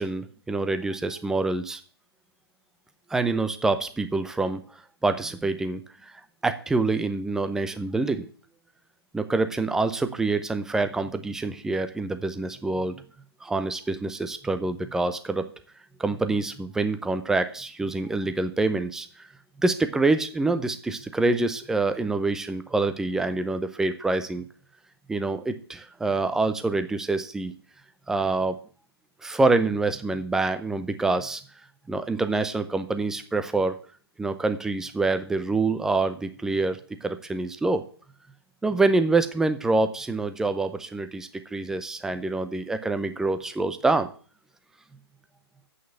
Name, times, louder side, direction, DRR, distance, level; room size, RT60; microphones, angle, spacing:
voice 1, 0.0-1.8 3.1-4.6 5.0-6.1 6.4-8.3 9.1-12.9 13.4-15.4 16.0-19.1 19.6-24.4 25.1-27.5 28.1-28.6 29.2-31.4 31.9-33.8 34.2-37.8 38.6-44.1, right 3 dB, 5° right, 9 dB, 0.6 m, -26 dB
8.3 x 6.2 x 8.0 m, 0.42 s
figure-of-eight pair, 135°, 14 cm